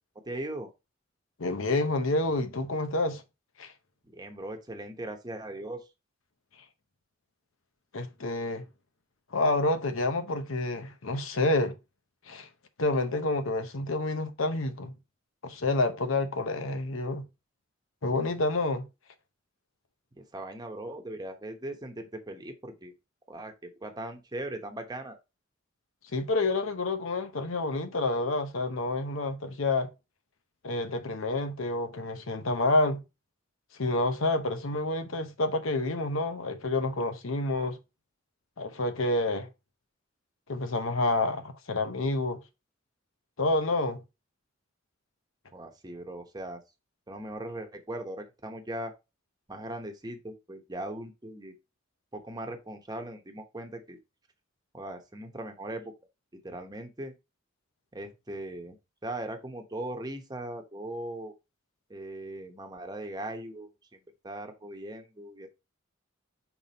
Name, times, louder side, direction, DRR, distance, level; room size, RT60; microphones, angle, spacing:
voice 1, 0.2-0.7 4.0-5.9 20.2-22.9 23.3-25.2 45.5-46.6 47.1-48.9 49.5-51.5 52.1-54.0 54.7-55.9 56.3-57.1 57.9-58.8 59.0-61.3 61.9-65.5, right 1 dB, 20° right, 1.0 m, -39 dB
voice 2, 1.4-3.2 3.6-3.7 7.9-8.7 9.3-11.7 12.3-12.5 12.8-14.9 15.4-17.2 18.0-18.9 26.1-29.9 30.6-33.0 33.8-37.8 38.6-39.5 40.5-42.4 43.4-44.0, left 2 dB, 85° left, 0.9 m, -28 dB
5.9 x 4.0 x 4.0 m
head